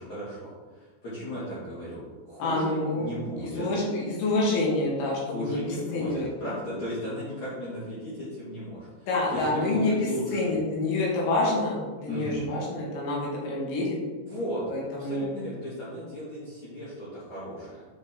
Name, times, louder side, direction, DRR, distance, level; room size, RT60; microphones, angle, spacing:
voice 1, 0.0-3.7 5.2-10.5 12.1-12.4 14.3-14.6 14.9-17.9, equal, 50° left, -11 dB, 2.8 m, -36 dB
voice 2, 2.4-3.1 3.4-5.6 5.9-6.3 9.1-14.0 14.7-15.3, left 2 dB, 70° left, -3 dB, 3.4 m, -27 dB
9.2 x 5.2 x 3.6 m, 1.4 s
omnidirectional pair, 5.0 m